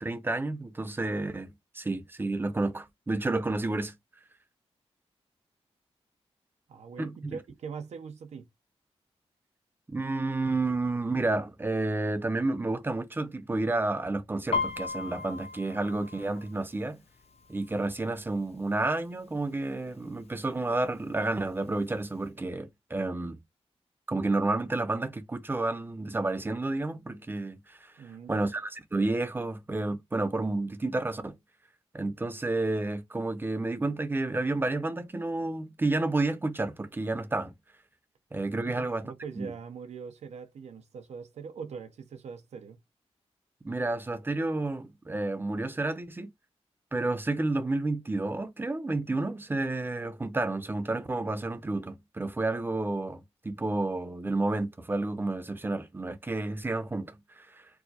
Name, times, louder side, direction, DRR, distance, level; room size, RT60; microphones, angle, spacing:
voice 1, 0.0-3.9 7.0-7.4 9.9-17.0 17.5-23.4 24.1-27.9 28.3-31.4 31.9-37.5 38.3-39.0 39.4-39.5 43.6-46.3 46.9-57.6, right 2 dB, 20° right, 0.6 m, -30 dB
voice 2, 6.7-8.4 28.0-28.5 38.6-42.8, right 6 dB, 85° right, 0.7 m, -42 dB
Piano, 14.5-18.2 18.5-18.9 19.3-19.9 20.5-20.6 20.8-21.9 22.2-22.3, left 4 dB, 65° left, 0.6 m, -36 dB
4.6 x 2.0 x 2.8 m
cardioid pair, 80°, 11 cm